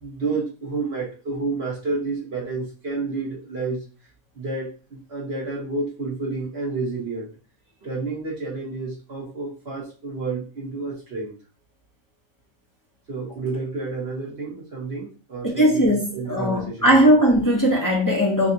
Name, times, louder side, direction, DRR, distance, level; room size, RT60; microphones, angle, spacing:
voice 1, 0.0-3.8 4.3-7.3 7.8-11.4 13.1-17.2, right 3 dB, 45° right, 1.6 m, -30 dB
voice 2, 15.6-18.5, equal, 15° left, 1.1 m, -18 dB
6.3 x 2.5 x 2.9 m
omnidirectional pair, 1.5 m